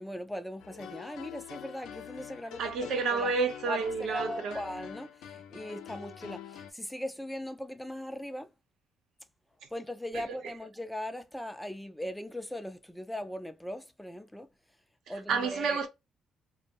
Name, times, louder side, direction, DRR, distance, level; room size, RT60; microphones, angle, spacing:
voice 1, 0.0-3.3 3.7-8.5 9.7-14.5 15.1-15.8, equal, 5° left, 0.3 m, -39 dB
sound 1, 0.6-6.7, left 9 dB, 85° left, 0.4 m, -45 dB
voice 2, 2.6-4.6 10.1-10.2 15.3-15.9, right 4 dB, 70° right, 0.7 m, -30 dB
2.6 x 2.0 x 2.7 m
cardioid pair, 130°, 0 cm